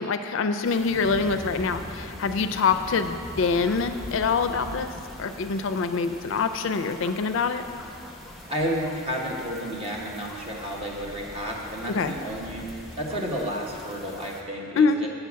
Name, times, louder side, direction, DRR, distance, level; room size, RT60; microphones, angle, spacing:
voice 1, 0.0-4.9 5.2-7.6 11.9-12.1 14.8-15.0, left 5 dB, 65° left, 8 dB, 0.4 m, -25 dB
sound 1, 0.6-14.4, left 1 dB, ahead, 0.7 m, -42 dB
voice 2, 8.5-12.7 13.0-15.1, equal, 25° right, -2 dB, 1.2 m, -31 dB
7.8 x 5.7 x 7.3 m, 2.5 s
head